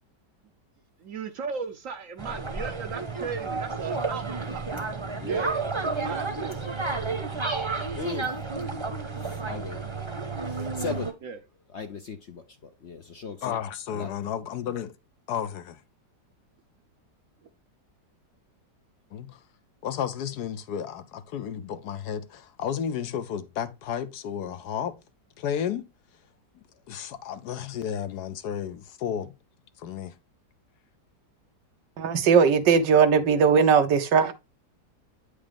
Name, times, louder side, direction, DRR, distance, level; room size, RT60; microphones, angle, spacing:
voice 1, 1.0-4.6 5.2-5.6 6.0-6.6 11.2-11.4, right 6 dB, 60° right, 0.9 m, -36 dB
sound 1, 2.2-11.1, right 4 dB, 20° right, 0.8 m, -31 dB
voice 2, 8.0-8.3 9.2-9.8 10.5-11.1 11.7-13.6 13.9-14.1, left 5 dB, 55° left, 0.8 m, -37 dB
voice 3, 13.4-14.9 15.3-15.8 19.1-19.4 19.8-25.0 25.4-25.9 26.9-29.3 29.8-30.1, left 8 dB, 70° left, 1.2 m, -32 dB
voice 4, 32.0-34.3, right 6 dB, 85° right, 1.6 m, -19 dB
8.8 x 4.9 x 3.4 m
omnidirectional pair, 1.9 m